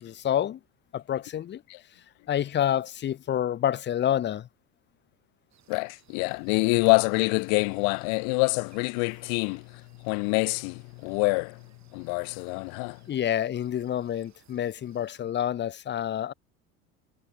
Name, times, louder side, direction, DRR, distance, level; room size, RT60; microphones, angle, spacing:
voice 1, 0.0-0.6 0.9-1.6 2.3-4.5 13.1-16.3, left 10 dB, 25° left, 0.8 m, -28 dB
sound 1, 5.5-15.2, right 10 dB, 35° right, 7.7 m, -63 dB
voice 2, 5.7-11.7 11.9-13.0, left 40 dB or more, 50° left, 0.8 m, -26 dB
figure-of-eight pair, 75°, 44 cm